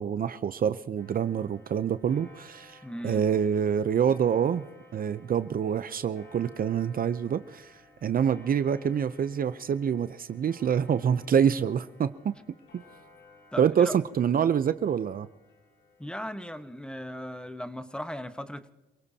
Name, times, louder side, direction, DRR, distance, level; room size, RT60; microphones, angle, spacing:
voice 1, 0.0-4.6 4.9-7.7 8.0-12.1 13.6-15.3, right 8 dB, 45° right, 13 dB, 0.6 m, -26 dB
Clock, 1.0-17.1, left 1 dB, 85° left, 5.6 m, -56 dB
voice 2, 2.8-3.3 13.5-14.0 16.0-18.7, equal, 5° left, 10 dB, 1.1 m, -37 dB
28.5 x 17.5 x 2.8 m, 1.1 s
cardioid pair, 90°, 20 cm